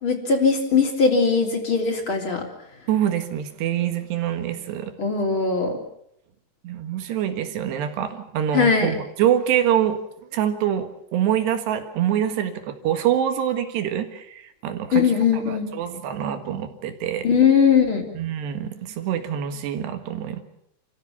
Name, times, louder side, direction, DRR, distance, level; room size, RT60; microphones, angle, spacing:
voice 1, 0.0-2.4 5.0-5.7 8.5-8.9 14.9-15.7 17.2-18.1, left 5 dB, 30° left, 2 dB, 3.7 m, -20 dB
voice 2, 2.9-4.9 6.6-10.0 10.3-15.0 15.5-17.3 18.2-20.4, right 10 dB, 90° right, 7 dB, 3.9 m, -25 dB
28.5 x 15.5 x 7.2 m, 0.76 s
omnidirectional pair, 4.7 m